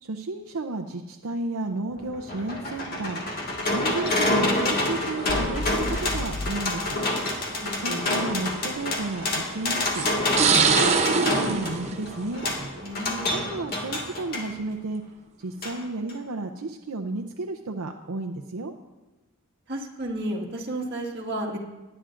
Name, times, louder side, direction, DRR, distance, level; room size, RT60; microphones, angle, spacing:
voice 1, 0.0-3.2 3.7-7.0 7.7-10.0 10.6-12.5 13.3-15.0 15.4-18.7, right 2 dB, 80° right, 3 dB, 0.6 m, -32 dB
sound 1, 1.9-14.5 15.6-15.8 16.1-16.2, left 2 dB, 40° left, 1.9 m, -28 dB
sound 2, 4.1-4.5 5.5-5.6 6.8-6.9 7.3-7.4 8.9-9.2 9.9-12.8 13.2-13.6, right 5 dB, 30° right, 0.7 m, -24 dB
sound 3, 5.3-6.6, left 2 dB, 20° left, 0.4 m, -32 dB
voice 2, 7.6-8.1 12.8-13.4 19.7-21.6, right 1 dB, 50° right, -1 dB, 1.7 m, -32 dB
21.0 x 9.8 x 2.5 m, 1.1 s
head